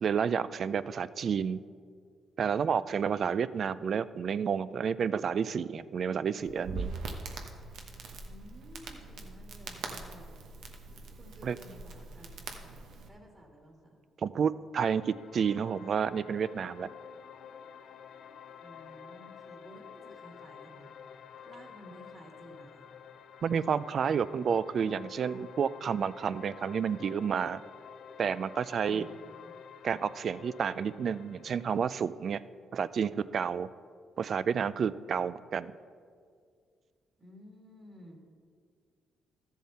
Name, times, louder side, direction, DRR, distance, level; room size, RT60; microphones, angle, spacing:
voice 1, 0.0-1.6 2.4-6.9 11.4-11.6 14.2-16.9 23.4-27.6 28.2-29.1 29.8-32.4 32.7-33.7 34.2-35.7, right 7 dB, 55° right, 16 dB, 0.3 m, -30 dB
Crackle, 6.4-13.1, right 3 dB, 75° right, 1.0 m, -42 dB
voice 2, 8.2-10.5 11.1-12.3 12.6-14.0 18.6-21.0 21.4-22.9 28.9-29.2 37.2-38.2, equal, 30° right, 0 dB, 2.3 m, -53 dB
sound 1, 14.8-31.8, left 7 dB, 70° left, 0.5 m, -50 dB
13.5 x 7.1 x 4.3 m, 2.1 s
cardioid pair, 90°, 0 cm